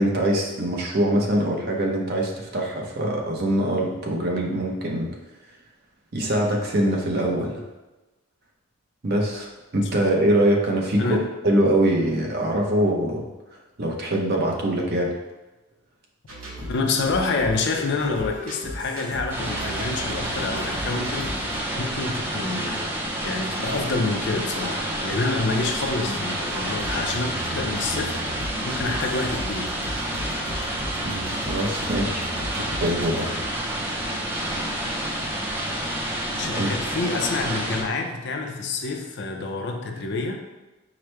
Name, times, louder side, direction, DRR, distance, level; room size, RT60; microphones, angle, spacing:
voice 1, 0.0-5.1 6.1-7.6 9.0-11.2 11.4-13.3 13.8-15.1 26.1-26.2 31.0-32.3 32.6-33.3 36.6-36.7, right 1 dB, 50° right, 0 dB, 0.7 m, -23 dB
sound 1, 16.3-33.5, right 1 dB, 80° right, 1.0 m, -37 dB
voice 2, 16.7-22.9 23.2-29.8 36.3-40.4, left 3 dB, 55° left, 3 dB, 0.5 m, -28 dB
sound 2, 19.3-37.8, right 1 dB, 10° right, 0.5 m, -29 dB
4.9 x 2.1 x 4.4 m, 1.1 s
head